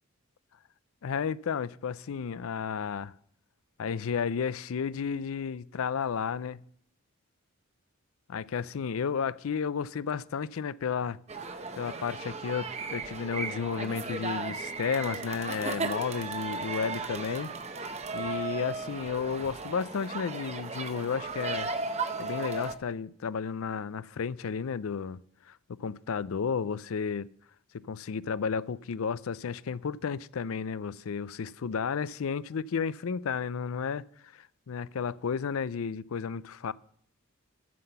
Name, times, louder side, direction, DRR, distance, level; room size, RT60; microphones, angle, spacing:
voice 1, 1.0-3.1 3.8-6.6 8.3-11.2 11.8-17.5 18.1-21.7 22.2-25.2 25.5-27.3 27.7-36.7, left 6 dB, 75° left, 0.4 m, -32 dB
sound 1, 11.3-22.8, right 4 dB, 30° right, 0.8 m, -36 dB
12.5 x 5.9 x 6.8 m
head